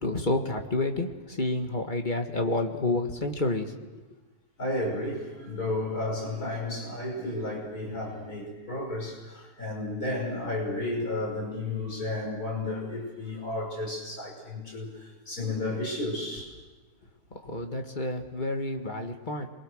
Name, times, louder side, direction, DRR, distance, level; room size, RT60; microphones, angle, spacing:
voice 1, 0.0-4.0 17.3-19.5, left 2 dB, 25° left, 4 dB, 1.6 m, -29 dB
voice 2, 4.6-16.5, left 2 dB, 45° left, -1 dB, 6.3 m, -32 dB
28.0 x 23.0 x 6.5 m, 1.3 s
omnidirectional pair, 2.3 m